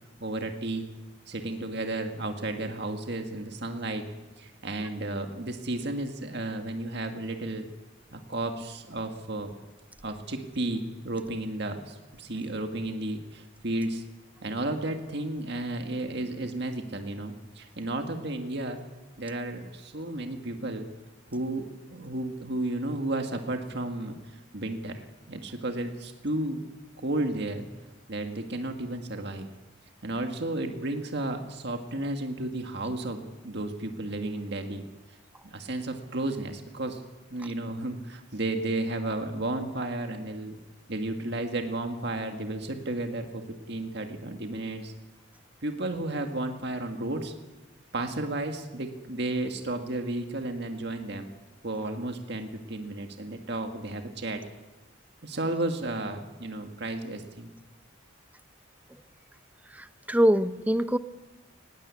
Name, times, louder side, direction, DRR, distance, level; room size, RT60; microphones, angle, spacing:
voice 1, 0.2-0.9 1.3-4.1 4.4-7.7 8.1-9.5 10.0-14.0 14.4-18.8 19.2-20.9 21.3-26.6 27.0-27.7 28.1-29.5 30.0-34.8 35.4-37.0 37.3-40.6 40.9-43.4 43.7-44.9 45.6-47.3 47.9-51.3 51.6-54.4 55.2-57.5, right 2 dB, 55° right, 5 dB, 1.8 m, -33 dB
voice 2, 59.7-61.0, equal, 10° right, 12 dB, 0.6 m, -24 dB
19.5 x 17.0 x 8.4 m, 1.1 s
head